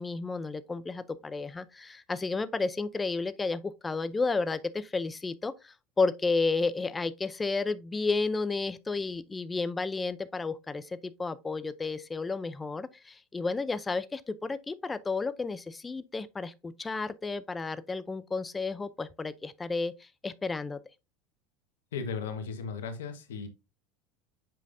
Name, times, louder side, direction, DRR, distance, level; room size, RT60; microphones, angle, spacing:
voice 1, 0.0-20.8, left 3 dB, 15° left, 0.5 m, -32 dB
voice 2, 21.9-23.5, left 5 dB, 85° left, 1.3 m, -36 dB
7.7 x 5.1 x 2.6 m
hypercardioid pair, 95°, 0 cm